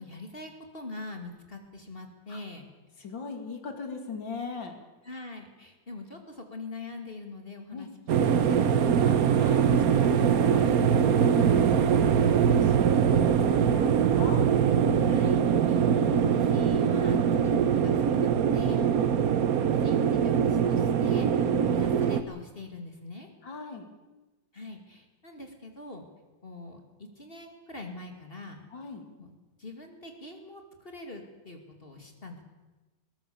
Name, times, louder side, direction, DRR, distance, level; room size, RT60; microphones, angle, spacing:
voice 1, 0.0-2.7 3.0-3.1 5.0-9.3 15.0-18.9 19.7-23.3 24.5-26.0 26.4-28.6 29.2-29.3 29.6-32.4, left 2 dB, 30° left, 4 dB, 2.5 m, -44 dB
voice 2, 3.0-4.7 7.7-7.9 9.1-14.4 18.6-19.0 23.4-23.9 28.7-29.0, left 4 dB, 80° left, 5 dB, 3.3 m, -39 dB
sound 1, 8.1-22.2, right 7 dB, 55° right, 1.2 m, -23 dB
21.5 x 19.0 x 7.1 m, 1.1 s
omnidirectional pair, 2.1 m